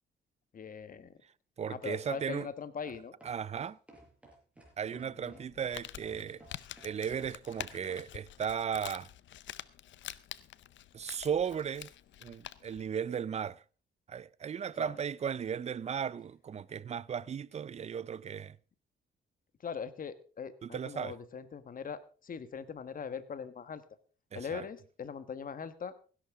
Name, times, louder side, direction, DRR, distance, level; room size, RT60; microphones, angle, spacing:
voice 1, 0.5-1.1 1.7-3.1 4.9-5.4 14.8-14.9 19.6-23.8 24.3-25.9, left 6 dB, 45° left, 1.3 m, -41 dB
voice 2, 1.6-2.5 3.2-3.8 4.8-6.4 6.8-9.1 10.9-11.9 12.2-13.6 14.1-18.6 20.6-21.1 24.3-24.6, right 7 dB, 35° right, 0.5 m, -36 dB
sound 1, 2.9-8.0, right 1 dB, 5° right, 5.5 m, -56 dB
Crumpling crinkling, 5.4-12.9, left 12 dB, 70° left, 0.7 m, -47 dB
16.0 x 11.0 x 3.6 m
cardioid pair, 90°, 20 cm